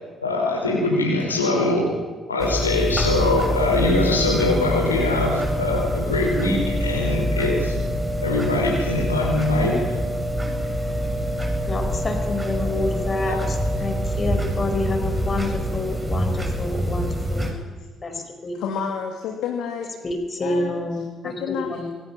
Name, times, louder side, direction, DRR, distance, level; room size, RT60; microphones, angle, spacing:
voice 1, 0.2-1.9 2.3-7.8 8.2-9.8 13.3-13.4, left 2 dB, 85° left, 0 dB, 4.8 m, -22 dB
sound 1, 2.4-17.5, equal, 20° right, 7.3 m, -25 dB
voice 2, 11.7-17.6 18.0-18.6 20.0-21.9, left 2 dB, 35° left, 5 dB, 4.9 m, -28 dB
voice 3, 18.5-19.9 20.4-20.8 21.2-21.8, left 7 dB, 60° left, 2 dB, 2.4 m, -30 dB
26.0 x 21.5 x 5.9 m, 1.3 s
figure-of-eight pair, 45°, 0 cm